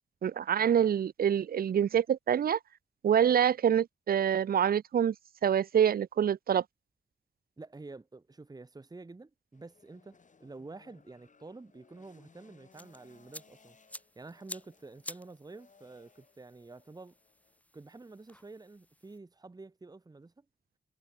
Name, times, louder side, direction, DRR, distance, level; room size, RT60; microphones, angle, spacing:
voice 1, 0.2-2.6 3.0-5.1 5.4-6.6, right 9 dB, 60° right, 0.4 m, -26 dB
voice 2, 7.6-13.8 14.1-17.2 17.7-20.4, right 3 dB, 25° right, 1.4 m, -49 dB
sound 1, 9.5-17.6, left 5 dB, 45° left, 3.2 m, -64 dB
sound 2, 12.7-19.2, left 1 dB, 10° left, 1.5 m, -51 dB
wide cardioid pair, 175°, 17 cm